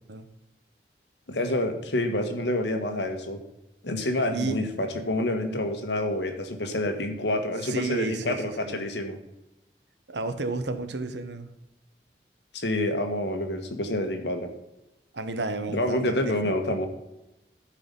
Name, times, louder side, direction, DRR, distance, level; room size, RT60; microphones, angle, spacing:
voice 1, 1.3-3.4 3.8-9.2 12.5-14.5 15.7-16.9, left 1 dB, 85° left, 5 dB, 1.5 m, -28 dB
voice 2, 7.6-8.8 10.1-11.5 15.1-16.5, right 3 dB, 85° right, 9 dB, 1.0 m, -32 dB
13.0 x 4.9 x 5.3 m, 0.93 s
head